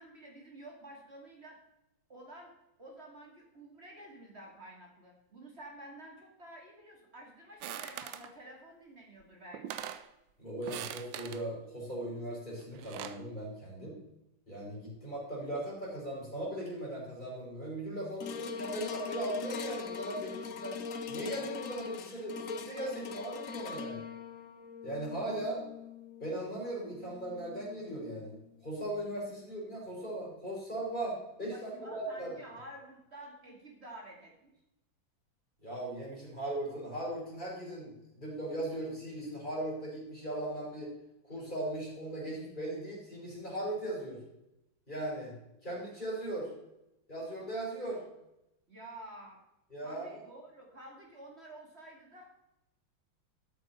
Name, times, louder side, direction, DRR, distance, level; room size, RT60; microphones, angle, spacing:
voice 1, 0.0-1.6 2.1-2.5 2.8-9.9 31.5-34.5 48.7-49.4 49.8-52.4, right 1 dB, 30° right, 0 dB, 2.6 m, -50 dB
sound 1, 7.6-8.3 9.2-9.3 9.5-10.1 10.6-11.4 12.6-13.2, right 10 dB, 75° right, 1.4 m, -42 dB
voice 2, 10.4-14.0 14.5-20.8 21.1-24.0 24.8-25.6 26.2-28.3 28.6-32.3 35.6-40.9 41.3-44.2 44.9-45.3 45.6-46.5 47.1-48.0 49.7-50.2, right 1 dB, 20° left, -5 dB, 5.3 m, -38 dB
sound 2, 18.2-28.6 29.2-29.3, left 6 dB, 60° left, 0.9 m, -42 dB
12.5 x 7.9 x 4.5 m, 0.87 s
omnidirectional pair, 2.3 m